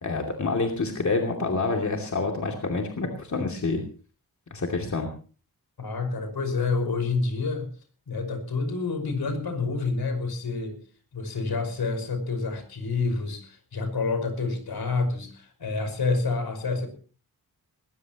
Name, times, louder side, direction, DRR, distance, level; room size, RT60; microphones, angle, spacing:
voice 1, 0.0-3.8 4.5-5.1, left 3 dB, 50° left, 2 dB, 2.8 m, -27 dB
voice 2, 5.8-7.7 8.1-10.8 11.1-16.9, left 3 dB, 80° left, 8 dB, 5.5 m, -28 dB
20.5 x 19.5 x 3.0 m, 0.39 s
wide cardioid pair, 120°, 37 cm